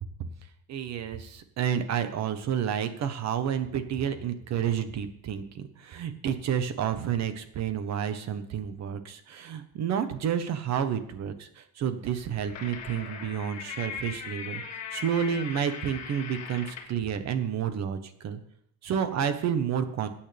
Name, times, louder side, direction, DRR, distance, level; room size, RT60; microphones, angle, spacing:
voice 1, 0.7-14.6 14.9-18.4 18.8-20.1, right 8 dB, 45° right, 9 dB, 1.3 m, -30 dB
sound 1, 12.1-17.0, left 6 dB, 45° left, 1.7 m, -39 dB
21.0 x 8.7 x 3.5 m, 0.71 s
cardioid pair, 150°, 36 cm